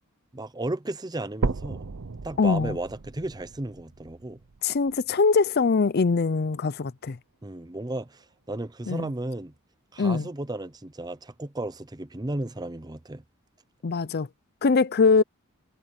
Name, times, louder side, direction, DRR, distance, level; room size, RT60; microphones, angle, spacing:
voice 1, 0.3-1.9 2.2-4.4 7.4-9.5 9.9-13.2, right 2 dB, 20° right, 0.7 m, -34 dB
sound 1, 1.4-5.4 6.0-6.1 6.6-6.7 7.1-7.2 8.0-8.1, right 3 dB, 60° right, 0.7 m, -34 dB
voice 2, 2.4-2.8 4.6-7.2 8.9-9.1 10.0-10.3 13.8-14.3 14.6-15.2, left 4 dB, 45° left, 0.5 m, -22 dB
head